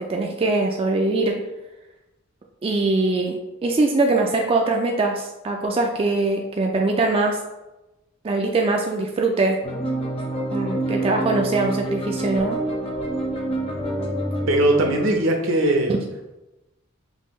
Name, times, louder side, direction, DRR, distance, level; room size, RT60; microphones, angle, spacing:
voice 1, 0.0-1.3 2.6-7.4 8.2-9.6 10.5-12.6, right 2 dB, 25° right, 1 dB, 0.3 m, -22 dB
sound 1, 9.6-15.1, right 1 dB, 25° left, 0.7 m, -27 dB
voice 2, 14.5-15.9, right 1 dB, 70° right, 3 dB, 0.7 m, -19 dB
5.3 x 2.7 x 3.1 m, 1.0 s
head